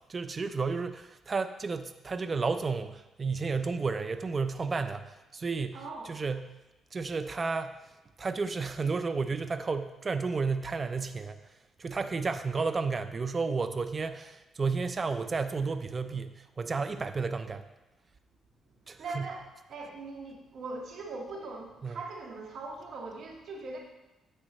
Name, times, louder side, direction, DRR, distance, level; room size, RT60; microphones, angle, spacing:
voice 1, 0.1-5.8 6.0-6.5 6.9-7.8 8.2-11.4 11.8-17.7 18.9-19.3 21.8-22.0, right 4 dB, 35° right, 10 dB, 0.5 m, -32 dB
voice 2, 5.7-6.2 19.0-23.8, right 3 dB, 65° right, -1 dB, 2.0 m, -41 dB
9.8 x 7.7 x 3.2 m, 1.0 s
cardioid pair, 90°, 0 cm